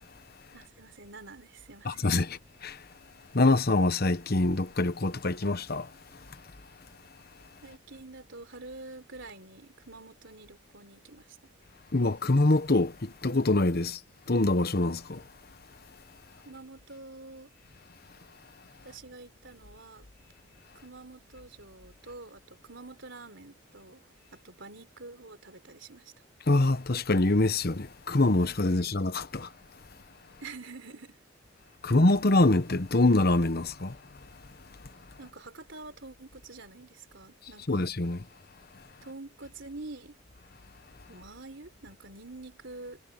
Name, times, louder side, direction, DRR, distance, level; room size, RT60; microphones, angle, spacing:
voice 1, 0.5-2.3 7.6-11.5 13.8-13.9 16.4-17.5 18.8-20.1 20.7-24.0 24.3-26.1 28.7-29.0 30.4-31.2 35.2-37.9 39.0-40.2 41.1-43.0, right 3 dB, 60° right, 4.1 m, -47 dB
voice 2, 1.8-2.4 2.6-2.7 3.3-5.9 11.9-14.0 14.3-15.2 26.5-29.5 31.8-33.9 37.7-38.2, left 2 dB, 45° left, 1.1 m, -24 dB
head